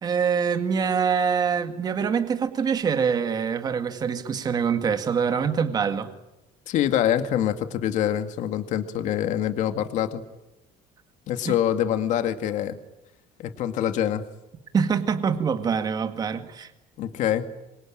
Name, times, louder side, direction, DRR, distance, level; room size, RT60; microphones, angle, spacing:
voice 1, 0.0-6.1 11.5-11.6 14.7-16.7, right 6 dB, 25° right, 8 dB, 2.0 m, -24 dB
voice 2, 6.7-10.2 11.3-12.8 13.4-14.3 17.0-17.5, left 10 dB, 55° left, 8 dB, 2.1 m, -25 dB
26.5 x 25.0 x 9.0 m, 0.95 s
cardioid pair, 175°, 15 cm